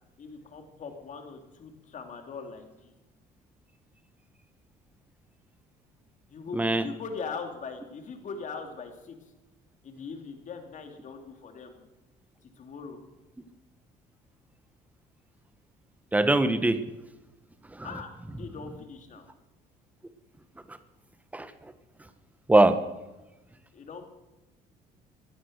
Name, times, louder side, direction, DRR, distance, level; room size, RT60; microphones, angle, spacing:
voice 1, 0.2-2.9 6.3-9.2 9.8-11.8 12.4-13.0 17.8-19.3 23.7-24.0, left 5 dB, 45° left, 5 dB, 2.8 m, -41 dB
voice 2, 6.5-6.8 16.1-16.8 17.7-17.9 20.7-20.8 21.3-21.7 22.5-22.8, right 2 dB, 10° right, 11 dB, 1.1 m, -22 dB
16.0 x 11.0 x 6.5 m, 1.1 s
cardioid pair, 110°, 17 cm